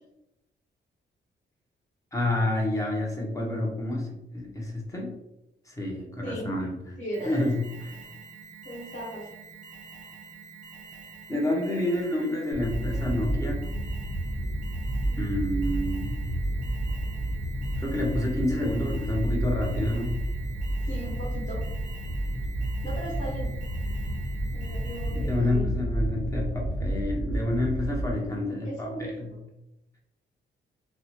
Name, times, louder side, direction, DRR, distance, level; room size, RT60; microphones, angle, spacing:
voice 1, 2.1-5.2 5.7-6.8 7.2-7.6 11.3-13.6 15.2-16.1 17.8-20.2 25.1-29.3, left 1 dB, 15° left, -1 dB, 0.6 m, -29 dB
voice 2, 7.0-7.4 8.6-9.3 15.1-15.5 20.9-21.6 22.8-23.5 24.5-25.8 28.6-29.4, equal, 40° left, -6 dB, 1.3 m, -37 dB
Alarm, 7.1-25.5, right 5 dB, 40° right, 0.6 m, -47 dB
sound 1, 12.5-28.1, right 1 dB, 55° left, 1.3 m, -30 dB
2.7 x 2.1 x 2.8 m, 0.89 s
wide cardioid pair, 150°, 20 cm